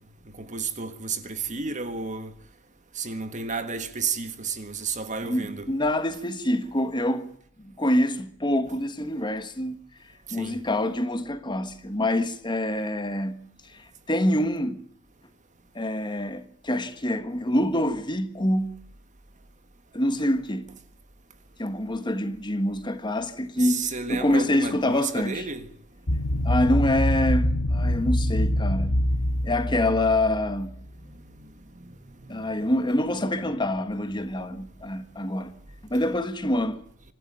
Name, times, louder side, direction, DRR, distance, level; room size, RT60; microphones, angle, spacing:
voice 1, 0.4-2.3 2.9-5.7 10.4-10.6 23.6-25.7 31.4-31.5 32.2-32.7, right 5 dB, 35° right, 1.6 m, -32 dB
voice 2, 5.2-7.3 7.6-9.8 10.3-14.8 15.7-18.8 19.9-20.7 21.6-25.5 26.4-28.9 29.4-30.8 32.3-35.5 35.9-36.8, left 1 dB, 20° left, 1.5 m, -26 dB
sound 1, 26.1-30.7, left 1 dB, 90° left, 1.7 m, -25 dB
26.0 x 12.5 x 9.1 m
head